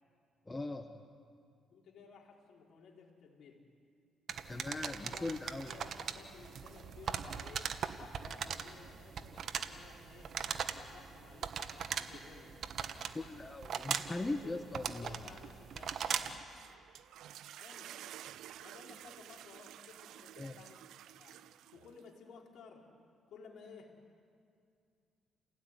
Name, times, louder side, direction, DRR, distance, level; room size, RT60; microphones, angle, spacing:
voice 1, 0.5-1.0 4.5-5.7 13.1-15.2 20.4-20.5, left 2 dB, 20° left, 6 dB, 1.3 m, -40 dB
voice 2, 1.7-3.6 4.9-7.8 8.2-10.4 10.8-12.6 14.3-16.1 17.5-18.0 18.6-21.4 21.7-22.9 23.3-23.9, left 5 dB, 70° left, -1 dB, 4.9 m, -56 dB
sound 1, 4.3-16.4, right 7 dB, 60° right, 1.4 m, -40 dB
sound 2, 16.2-22.1, right 12 dB, 80° right, 0.6 m, -52 dB
29.5 x 17.5 x 10.0 m, 2.3 s
cardioid pair, 90°, 0 cm